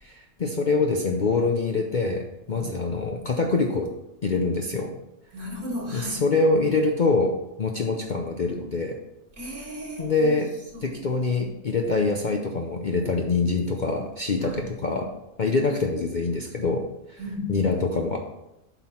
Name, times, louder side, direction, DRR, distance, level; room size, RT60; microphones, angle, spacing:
voice 1, 0.0-3.9 4.2-4.9 5.9-9.0 10.0-10.5 10.8-15.1 15.4-17.2 17.5-18.2, left 3 dB, 45° left, 2 dB, 0.7 m, -25 dB
voice 2, 5.3-6.3 9.3-10.3 10.7-11.2 14.4-14.6 17.2-17.7, left 1 dB, 60° right, -4 dB, 2.8 m, -35 dB
8.0 x 6.0 x 4.3 m, 0.88 s
omnidirectional pair, 1.4 m